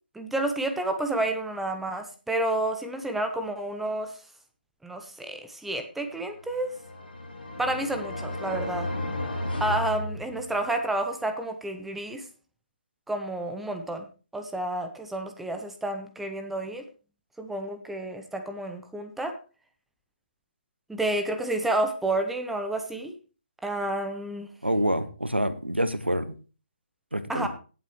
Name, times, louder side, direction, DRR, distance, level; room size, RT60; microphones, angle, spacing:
voice 1, 0.1-4.1 4.8-6.7 7.6-8.9 9.6-12.3 13.1-14.1 14.3-16.8 17.4-19.4 20.9-23.1 23.6-24.5 27.3-27.5, right 1 dB, 5° right, 6 dB, 0.8 m, -30 dB
sound 1, 6.4-10.8, left 1 dB, 65° left, 4.0 m, -34 dB
voice 2, 24.6-26.3 27.1-27.5, equal, 85° right, 12 dB, 1.2 m, -27 dB
17.0 x 7.6 x 3.2 m, 0.36 s
figure-of-eight pair, 140°, 6 cm